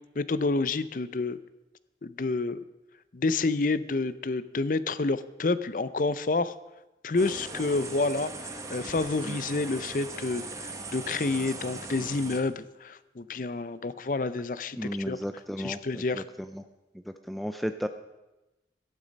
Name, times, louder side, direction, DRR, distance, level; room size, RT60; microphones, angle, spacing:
voice 1, 0.2-1.4 2.0-2.6 3.1-6.5 7.0-14.8 15.1-15.2 15.6-16.2, left 3 dB, 50° left, 15 dB, 0.5 m, -29 dB
sound 1, 7.2-12.4, right 3 dB, 20° right, 1.1 m, -39 dB
voice 2, 14.8-16.6 17.1-17.9, equal, ahead, 8 dB, 0.4 m, -34 dB
13.0 x 11.5 x 5.2 m, 1.0 s
head